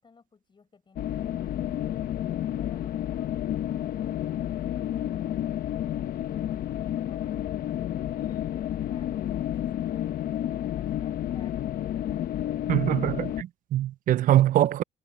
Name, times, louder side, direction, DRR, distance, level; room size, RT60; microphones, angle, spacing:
voice 1, 0.0-2.1 2.6-3.3 3.6-7.8 8.1-12.7, left 5 dB, 30° left, 5.7 m, -58 dB
sound 1, 1.0-13.4, left 11 dB, 60° left, 1.1 m, -30 dB
voice 2, 12.7-14.8, right 13 dB, 55° right, 0.5 m, -23 dB
cardioid pair, 110°, 17 cm